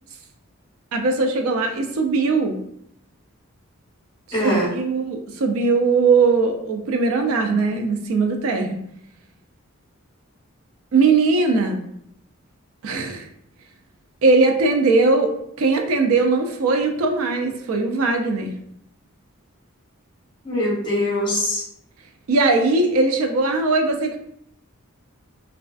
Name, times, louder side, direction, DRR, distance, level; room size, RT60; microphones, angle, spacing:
voice 1, 0.9-2.6 4.4-8.8 10.9-11.9 12.8-13.3 14.2-15.3 15.6-18.5 22.3-24.2, right 3 dB, 85° right, 4 dB, 0.4 m, -20 dB
voice 2, 4.3-4.7 20.4-21.6, left 1 dB, 20° left, -5 dB, 0.9 m, -22 dB
2.3 x 2.3 x 2.4 m, 0.72 s
head